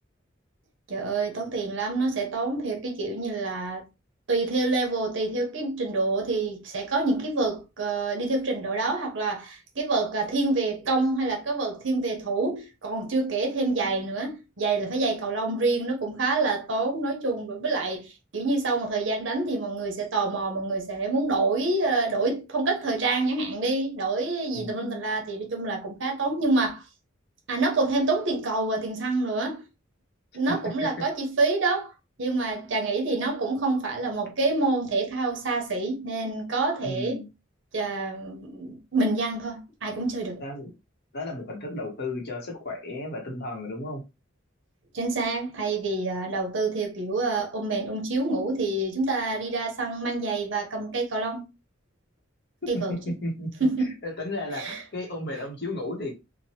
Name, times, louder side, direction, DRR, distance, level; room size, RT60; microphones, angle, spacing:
voice 1, 0.9-3.8 4.3-26.8 27.5-29.6 30.3-31.9 32.2-37.2 37.7-40.4 44.9-51.4 52.7-53.0 53.6-54.0 54.6-54.8, right 3 dB, 65° right, 0.9 m, -27 dB
voice 2, 24.5-25.0 30.5-31.0 36.8-37.3 40.4-40.7 41.1-44.0 52.6-56.1, left 1 dB, 55° left, 0.9 m, -34 dB
2.9 x 2.2 x 2.9 m
head